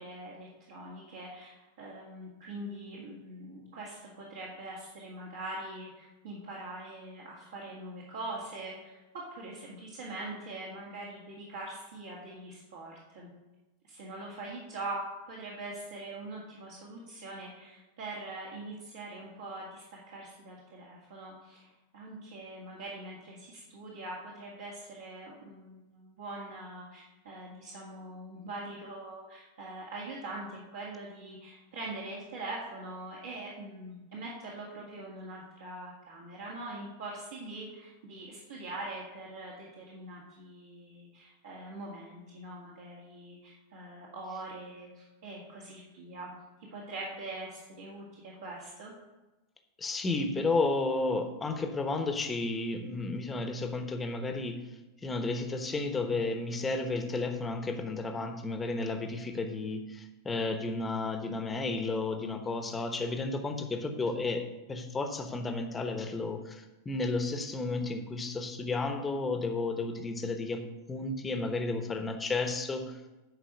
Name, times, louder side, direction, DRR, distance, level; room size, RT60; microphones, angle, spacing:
voice 1, 0.0-9.0 9.3-13.3 13.8-15.0 15.3-46.3 46.7-48.9, right 2 dB, 60° right, -6 dB, 2.1 m, -43 dB
voice 2, 49.8-54.6 55.0-70.6 70.9-73.0, left 3 dB, 15° left, 6 dB, 1.1 m, -32 dB
10.5 x 4.9 x 6.6 m, 1.1 s
figure-of-eight pair, 90°, 0 cm